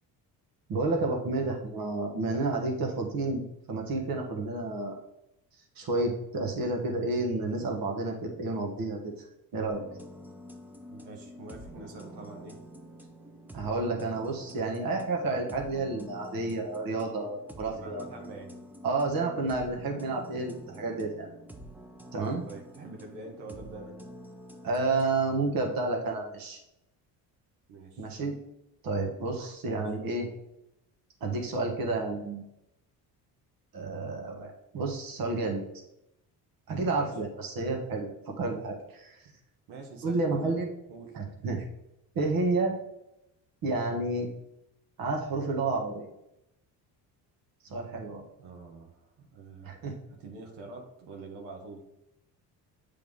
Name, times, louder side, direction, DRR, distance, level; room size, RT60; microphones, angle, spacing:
voice 1, 0.7-3.4 3.7-5.0 5.7-9.8 13.5-18.0 18.8-21.3 22.1-22.4 24.6-26.6 28.0-28.4 28.8-30.3 31.2-32.4 33.7-35.6 36.7-39.3 40.0-40.7 41.1-41.7 42.1-42.7 43.6-44.3 45.0-46.1 47.6-48.2 49.6-49.9, right 3 dB, 60° right, 1 dB, 1.4 m, -30 dB
sound 1, 9.7-25.1, equal, 5° right, 0.6 m, -48 dB
voice 2, 10.9-12.6 17.8-18.5 18.9-19.1 22.4-24.0 27.7-28.1 29.7-29.8 36.9-37.1 39.7-40.6 40.9-41.1 48.4-49.8 50.1-51.8, right 3 dB, 85° right, 1 dB, 1.3 m, -45 dB
7.6 x 3.5 x 3.6 m, 0.85 s
supercardioid pair, 80°, 40 cm